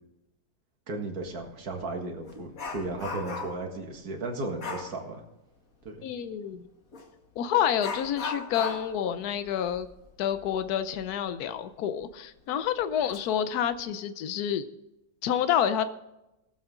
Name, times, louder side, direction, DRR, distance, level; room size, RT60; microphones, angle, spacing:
voice 1, 0.9-5.2 5.9-6.1, right 2 dB, 75° right, 2 dB, 2.2 m, -35 dB
Dog, 1.2-1.4 1.8-3.7 4.6-5.0 6.9-7.1 7.8-11.1 11.4-11.5 12.0-12.1 12.8-13.2 13.6-13.8, left 4 dB, 65° left, 2.0 m, -37 dB
voice 2, 6.0-6.6 7.4-9.9 10.2-14.6 15.2-15.8, left 9 dB, 80° left, 12 dB, 1.2 m, -28 dB
19.5 x 7.6 x 3.7 m, 0.93 s
omnidirectional pair, 1.6 m